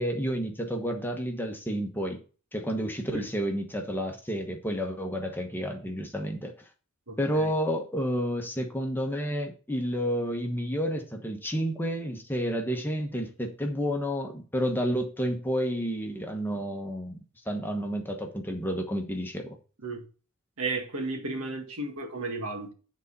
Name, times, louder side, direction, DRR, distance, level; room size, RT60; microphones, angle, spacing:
voice 1, 0.0-2.2 2.5-6.5 7.2-17.2 17.5-19.6, equal, 10° left, 1.1 m, -30 dB
voice 2, 7.1-7.5 19.8-20.0 20.6-22.7, right 2 dB, 70° right, 1.8 m, -34 dB
9.2 x 4.1 x 5.4 m
head